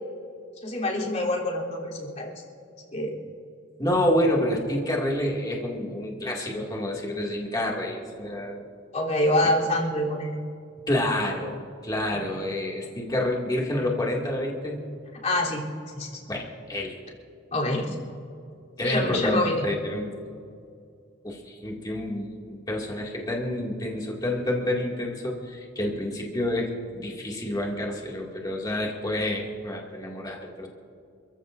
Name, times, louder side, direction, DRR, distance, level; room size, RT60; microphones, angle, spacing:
voice 1, 0.6-2.3 2.9-3.2 8.9-10.4 12.1-12.2 15.2-15.7 15.9-16.2 17.5-18.0 18.8-19.7, left 1 dB, 40° left, -4 dB, 3.5 m, -26 dB
voice 2, 3.8-8.6 9.4-9.5 10.9-11.6 11.8-14.8 16.3-16.9 18.8-20.1 21.2-30.7, left 1 dB, 20° left, -2 dB, 2.4 m, -28 dB
28.5 x 15.0 x 2.7 m, 2.4 s
head